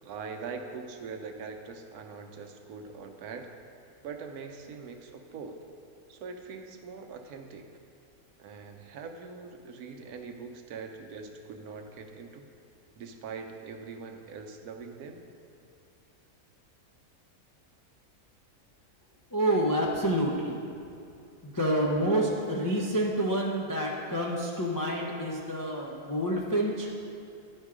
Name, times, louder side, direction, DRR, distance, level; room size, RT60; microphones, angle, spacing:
voice 1, 0.0-3.5 4.0-5.6 6.1-7.7 8.4-12.5 13.0-15.2, right 5 dB, 80° right, 5 dB, 1.2 m, -42 dB
voice 2, 19.3-20.6 21.4-26.9, right 1 dB, 30° left, -2 dB, 0.3 m, -28 dB
11.5 x 4.5 x 4.8 m, 2.5 s
omnidirectional pair, 1.6 m